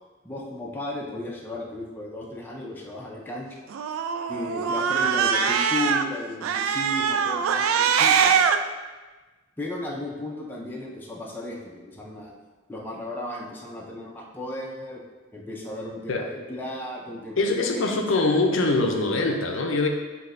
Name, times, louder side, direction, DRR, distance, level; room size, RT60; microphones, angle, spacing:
voice 1, 0.2-3.5 4.3-8.4 9.6-12.3 12.7-15.0 15.3-18.0, left 1 dB, 10° left, -3 dB, 0.5 m, -35 dB
Cat, 3.7-6.0 6.4-8.6, right 7 dB, 85° right, 0.3 m, -22 dB
voice 2, 17.4-19.9, left 2 dB, 70° left, 2 dB, 0.5 m, -23 dB
7.5 x 2.7 x 2.6 m, 1.2 s
head